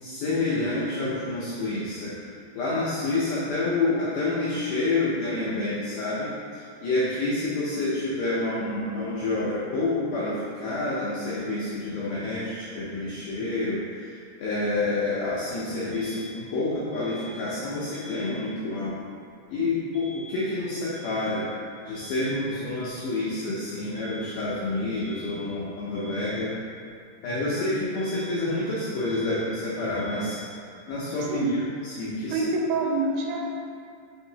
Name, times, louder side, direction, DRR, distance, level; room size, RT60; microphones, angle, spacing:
voice 1, 0.0-2.2 2.6-19.0 19.5-21.5 21.8-26.5 27.2-30.4 30.9-32.4, left 2 dB, 80° left, -8 dB, 1.9 m, -28 dB
Alarm, 15.9-18.9 19.9-22.9 23.9-26.9 28.0-30.9, left 1 dB, 60° right, 2.2 m, -47 dB
voice 2, 32.3-33.5, right 3 dB, 90° right, -1 dB, 2.4 m, -26 dB
5.6 x 2.7 x 2.7 m, 2.4 s
omnidirectional pair, 4.2 m